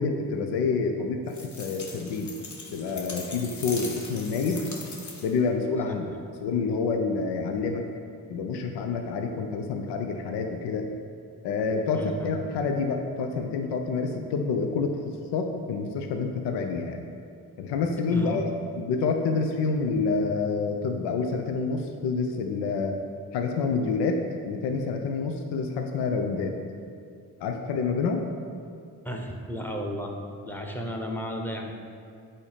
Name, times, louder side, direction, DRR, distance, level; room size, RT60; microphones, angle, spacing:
voice 1, 0.0-2.3 2.7-4.6 5.2-6.1 6.4-7.8 8.3-10.9 11.4-15.0 15.3-17.0 17.6-23.0 23.3-26.5 27.4-28.2, left 4 dB, 80° left, 4 dB, 0.6 m, -28 dB
sound 1, 1.3-5.5, left 3 dB, 45° left, 1.1 m, -40 dB
voice 2, 11.9-12.3 18.1-18.6 29.0-30.1 30.4-31.7, equal, 5° left, 2 dB, 0.9 m, -34 dB
8.0 x 2.9 x 5.0 m, 2.3 s
supercardioid pair, 50°, 41 cm